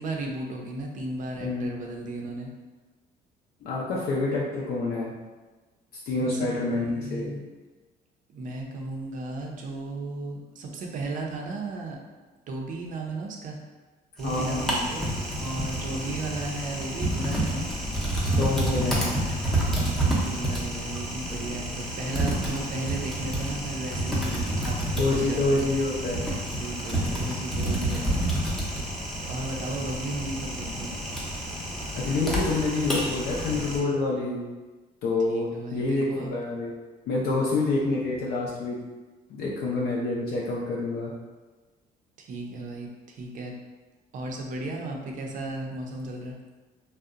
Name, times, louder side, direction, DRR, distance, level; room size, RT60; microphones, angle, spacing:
voice 1, 0.0-2.5 6.2-7.4 8.3-12.0 12.5-13.6 14.2-15.1 15.4-17.7 18.7-19.0 19.5-24.8 25.1-25.6 26.6-28.2 29.2-31.0 35.3-36.3 37.2-37.7 42.2-43.5 44.1-46.4, right 2 dB, 50° right, 1 dB, 0.5 m, -35 dB
voice 2, 1.4-1.7 3.6-5.1 5.9-7.3 14.2-14.9 18.4-19.1 25.0-26.3 26.9-27.0 32.0-34.4 35.0-36.7 37.1-38.8 39.3-41.1, left 3 dB, 65° left, -4 dB, 0.4 m, -27 dB
Typing, 14.2-33.8, right 1 dB, ahead, 0.5 m, -29 dB
2.6 x 2.0 x 2.4 m, 1.2 s
cardioid pair, 110°, 17 cm